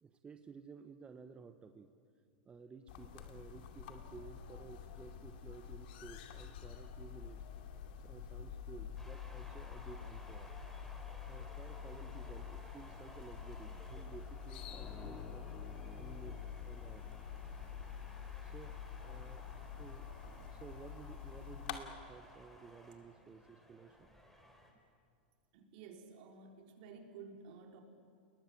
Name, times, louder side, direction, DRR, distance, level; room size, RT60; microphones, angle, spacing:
voice 1, 0.0-1.9 2.5-7.5 8.0-10.5 11.3-15.5 15.9-16.4 16.6-17.1 18.4-20.1 20.5-24.1, right 5 dB, 20° right, 7 dB, 1.1 m, -54 dB
sound 1, 2.9-21.8, left 8 dB, 65° left, 2.4 m, -47 dB
sound 2, 9.0-24.7, left 1 dB, 5° left, 4.1 m, -58 dB
sound 3, 14.5-19.3, left 3 dB, 25° left, 3.8 m, -55 dB
voice 2, 25.5-27.8, right 5 dB, 60° right, 3 dB, 3.9 m, -53 dB
28.5 x 20.5 x 7.5 m, 2.2 s
hypercardioid pair, 115°, 6 cm